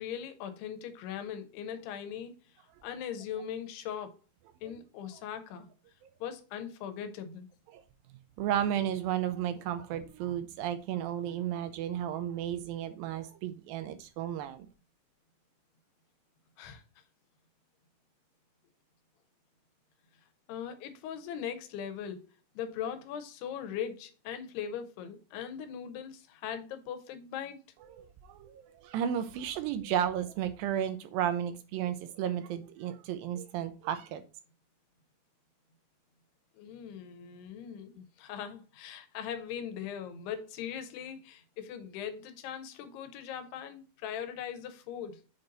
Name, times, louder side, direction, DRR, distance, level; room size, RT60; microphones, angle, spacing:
voice 1, 0.0-2.3 2.8-4.2 4.6-5.7 6.2-7.5 16.6-16.8 20.5-22.2 22.6-27.6 36.6-45.2, left 8 dB, 85° left, 2.9 m, -40 dB
voice 2, 8.4-14.7 27.9-34.2, right 10 dB, 80° right, 2.2 m, -33 dB
7.1 x 3.9 x 4.0 m
omnidirectional pair, 4.6 m